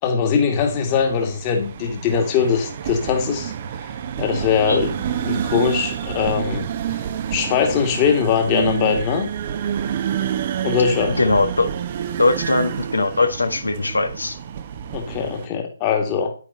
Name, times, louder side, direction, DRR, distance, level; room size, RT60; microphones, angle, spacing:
voice 1, 0.0-3.5 4.2-5.0 5.2-6.7 7.3-9.3 10.6-11.2 14.9-16.3, left 6 dB, 25° left, 4 dB, 2.1 m, -21 dB
sound 1, 0.6-15.5, right 9 dB, 35° right, 1.1 m, -28 dB
voice 2, 11.2-11.7 12.2-14.4, left 3 dB, 70° left, 7 dB, 1.7 m, -20 dB
10.5 x 9.6 x 4.1 m, 0.40 s
figure-of-eight pair, 140°, 0 cm